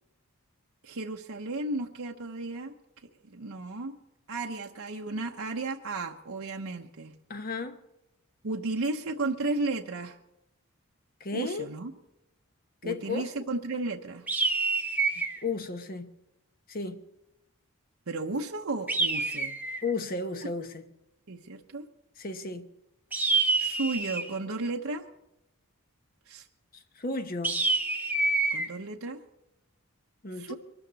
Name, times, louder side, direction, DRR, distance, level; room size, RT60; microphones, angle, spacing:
voice 1, 0.8-2.7 3.2-4.0 4.3-7.1 8.4-10.2 11.3-11.9 12.8-14.3 18.1-19.6 21.3-21.9 23.6-25.0 26.3-26.5 28.5-29.2 30.3-30.5, right 3 dB, 70° right, 0.9 m, -34 dB
voice 2, 7.3-7.8 11.2-11.7 12.8-13.3 15.4-16.1 16.7-17.0 19.8-20.8 22.2-22.7 27.0-27.6 30.2-30.5, left 3 dB, 40° left, 0.9 m, -33 dB
sound 1, 14.3-15.4 18.9-19.9 23.1-24.4 27.4-28.7, right 3 dB, 10° right, 1.1 m, -27 dB
22.5 x 13.0 x 4.1 m
head